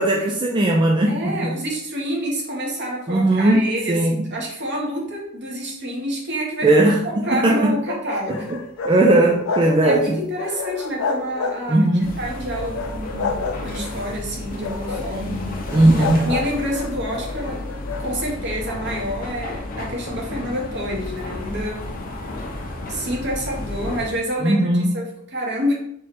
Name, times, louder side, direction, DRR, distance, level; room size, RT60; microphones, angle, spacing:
voice 1, 0.0-1.6 3.1-4.2 6.6-7.8 8.3-8.6 8.9-10.2 11.7-12.2 15.7-16.3 24.4-24.9, right 1 dB, 25° right, 0 dB, 0.4 m, -18 dB
voice 2, 1.1-6.7 7.0-8.5 9.8-15.5 16.1-17.6 18.0-21.9 22.8-25.7, equal, 55° right, -2 dB, 1.3 m, -28 dB
sound 1, 7.0-9.0 9.3-10.1 10.4-11.8 12.3-14.0 14.5-15.1 15.7-18.1, left 4 dB, 85° left, 0.5 m, -29 dB
sound 2, 12.0-24.1, left 2 dB, 45° left, 0.8 m, -32 dB
3.6 x 3.3 x 4.2 m, 0.74 s
head